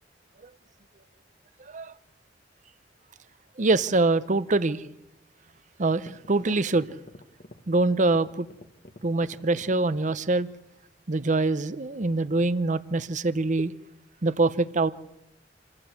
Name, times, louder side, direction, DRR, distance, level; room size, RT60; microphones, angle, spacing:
voice 1, 3.6-4.8 5.8-6.9 7.7-8.5 9.0-10.5 11.1-13.7 14.2-14.9, right 3 dB, 45° right, 15 dB, 0.8 m, -24 dB
sound 1, 5.4-5.5 5.9-10.6, left 1 dB, 50° left, 1.4 m, -48 dB
28.0 x 15.5 x 8.1 m, 0.87 s
head